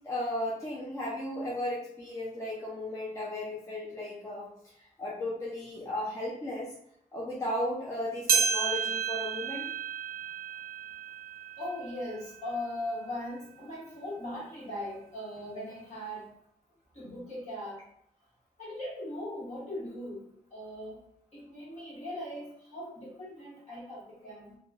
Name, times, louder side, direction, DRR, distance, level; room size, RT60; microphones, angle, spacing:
voice 1, 0.0-6.7 7.1-9.7, left 1 dB, 20° left, -6 dB, 0.5 m, -35 dB
sound 1, 8.3-12.9 13.4-13.5 14.3-14.4 15.4-15.5, right 6 dB, 90° right, 0.4 m, -32 dB
voice 2, 11.6-16.3 16.9-17.8 18.6-20.3 20.5-21.0 21.3-24.6, left 1 dB, 50° left, -7 dB, 1.3 m, -39 dB
2.9 x 2.2 x 2.3 m, 0.71 s
wide cardioid pair, 145°, 15 cm